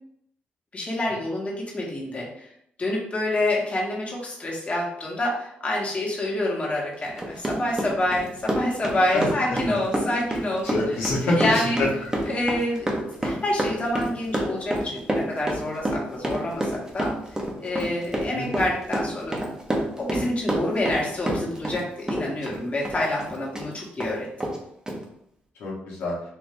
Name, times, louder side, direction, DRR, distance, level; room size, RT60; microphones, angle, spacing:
voice 1, 0.7-2.4 2.8-10.7 11.2-11.8 12.3-12.9 13.2-17.1 17.6-19.4 20.0-24.3, left 1 dB, 30° left, -4 dB, 1.5 m, -27 dB
Run, 7.0-21.8 22.1-23.7 24.0-24.1 24.4-24.6 24.9-25.0, right 1 dB, 20° right, 1.0 m, -28 dB
voice 2, 10.6-11.9 18.3-18.6 25.6-26.1, left 2 dB, 85° left, -5 dB, 1.3 m, -26 dB
4.3 x 2.8 x 3.4 m, 0.73 s
cardioid pair, 80°, 4 cm